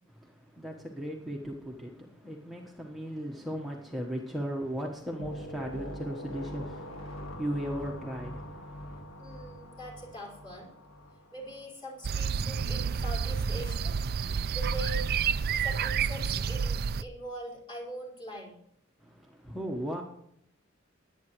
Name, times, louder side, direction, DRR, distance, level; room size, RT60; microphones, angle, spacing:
voice 1, 0.1-9.0 19.0-20.0, equal, ahead, 1.3 m, -37 dB
sound 1, 5.2-11.7, equal, 75° left, 2.0 m, -43 dB
voice 2, 9.2-10.7 11.3-13.9 14.5-15.1 15.6-18.6, right 1 dB, 25° left, 4.7 m, -42 dB
sound 2, 12.0-17.0, right 6 dB, 50° right, 0.4 m, -29 dB
21.0 x 9.1 x 3.1 m
head